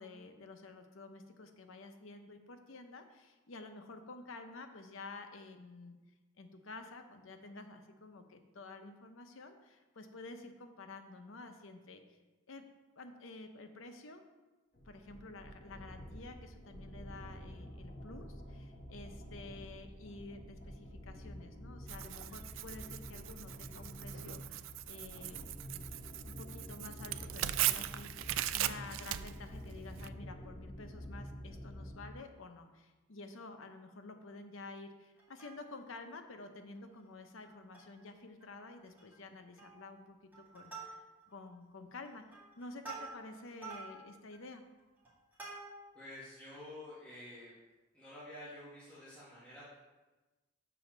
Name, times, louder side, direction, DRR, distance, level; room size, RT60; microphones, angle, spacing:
voice 1, 0.0-6.0 6.4-12.2 12.5-12.7 13.0-14.2 14.8-25.4 25.7-25.9 26.2-40.2 40.5-44.6, left 3 dB, 75° left, 6 dB, 0.7 m, -50 dB
sound 1, 14.7-32.2, equal, 30° left, 2.7 m, -48 dB
Tearing, 21.9-30.1, right 14 dB, 70° right, 0.3 m, -39 dB
Plucked string instrument, 35.2-36.0 36.4-36.5 36.8-37.0 37.4-38.1 38.4-38.5 38.9-39.2 39.6-40.0 40.3-41.4 41.9-46.0 46.5-46.6, right 4 dB, 10° right, 1.8 m, -49 dB
voice 2, 45.9-47.5 47.9-49.8, left 1 dB, 5° left, -11 dB, 1.6 m, -50 dB
7.0 x 4.3 x 6.1 m, 1.2 s
head